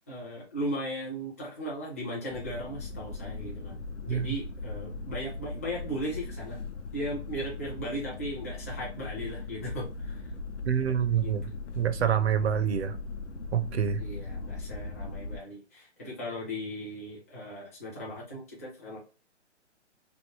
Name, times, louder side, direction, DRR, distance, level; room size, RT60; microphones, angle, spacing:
voice 1, 0.1-6.6 6.9-10.3 10.9-11.0 11.2-11.3 14.0-19.0, equal, 15° left, 0.5 m, -37 dB
sound 1, 2.3-15.4, left 3 dB, 75° left, 0.7 m, -39 dB
voice 2, 10.6-13.0 13.5-14.0, right 8 dB, 65° right, 0.6 m, -27 dB
3.2 x 2.5 x 2.9 m
hypercardioid pair, 160°, 35 cm